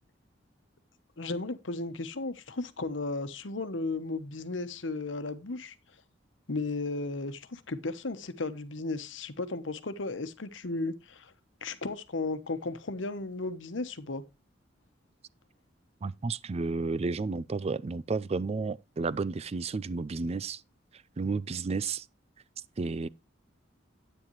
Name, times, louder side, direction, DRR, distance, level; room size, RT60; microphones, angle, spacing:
voice 1, 1.2-5.7 6.5-11.3 11.6-14.2, left 3 dB, 85° left, 1.1 m, -35 dB
voice 2, 16.0-20.6 21.2-22.0 22.8-23.1, right 4 dB, 35° right, 0.4 m, -32 dB
10.0 x 9.0 x 3.1 m
head